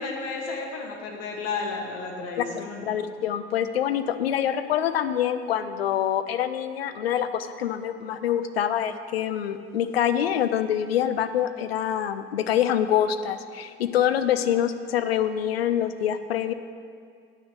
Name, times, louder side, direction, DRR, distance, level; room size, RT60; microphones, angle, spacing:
voice 1, 0.0-2.9, left 4 dB, 55° left, 1 dB, 1.4 m, -32 dB
voice 2, 2.9-16.5, left 10 dB, 80° left, 11 dB, 0.5 m, -25 dB
9.4 x 6.4 x 6.2 m, 2.1 s
figure-of-eight pair, 60°, 30 cm